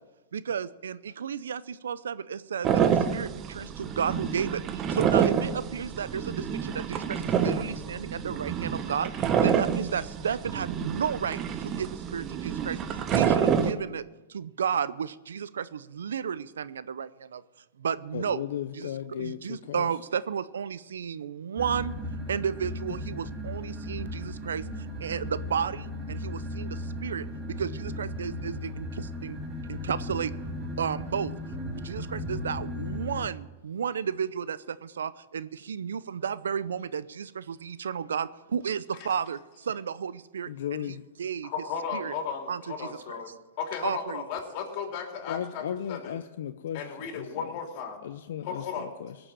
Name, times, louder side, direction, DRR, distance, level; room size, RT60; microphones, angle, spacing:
voice 1, 0.3-14.0 14.3-17.4 17.8-18.4 18.7-18.9 19.2-21.9 22.3-27.3 27.6-29.4 29.7-30.3 30.6-31.3 31.6-41.5 41.9-42.1 42.5-43.2 43.8-44.2, right 7 dB, 85° right, 17 dB, 0.6 m, -33 dB
sound 1, 2.6-13.7, right 7 dB, 30° right, 1.0 m, -28 dB
voice 2, 18.1-19.9 40.5-41.0 45.2-47.6 48.0-49.2, left 10 dB, 75° left, 9 dB, 0.6 m, -36 dB
sound 2, 21.6-33.3, left 1 dB, 15° right, 2.2 m, -36 dB
voice 3, 41.4-45.6 45.9-46.2 46.7-48.0 48.4-48.9, left 6 dB, 50° left, 2 dB, 3.3 m, -35 dB
18.0 x 6.9 x 7.5 m, 1.1 s
hypercardioid pair, 125°, 0 cm